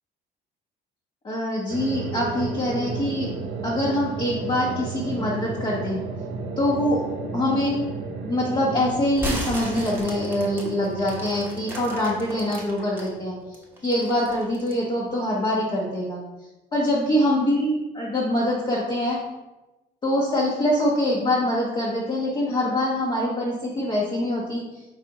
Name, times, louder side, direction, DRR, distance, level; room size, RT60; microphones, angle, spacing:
voice 1, 1.2-3.3 3.6-6.0 6.6-7.0 7.3-7.9 8.3-13.4 13.8-16.2 16.7-19.2 20.0-24.6, left 1 dB, 30° left, -5 dB, 0.9 m, -24 dB
sound 1, 1.7-13.8, right 4 dB, 90° right, 0.5 m, -34 dB
sound 2, 9.1-13.1 13.5-14.8, right 1 dB, 15° right, 0.9 m, -34 dB
4.8 x 3.2 x 2.9 m, 1.1 s
cardioid pair, 110°, 17 cm